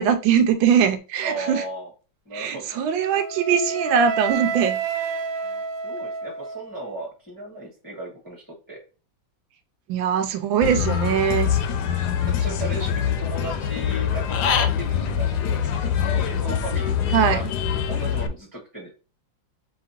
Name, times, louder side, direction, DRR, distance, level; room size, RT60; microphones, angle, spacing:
voice 1, 0.0-1.6 2.3-4.8 9.9-11.5 17.1-17.4, right 7 dB, 90° right, 1.4 m, -21 dB
voice 2, 1.2-1.9 2.2-2.8 5.4-8.8 12.0-17.5 17.9-18.9, right 2 dB, 10° right, 1.3 m, -36 dB
Wind instrument woodwind instrument, 3.0-7.0, right 5 dB, 70° right, 1.3 m, -29 dB
Human voice / Bird, 10.6-18.3, left 8 dB, 70° left, 1.1 m, -24 dB
4.9 x 2.9 x 2.8 m
omnidirectional pair, 2.1 m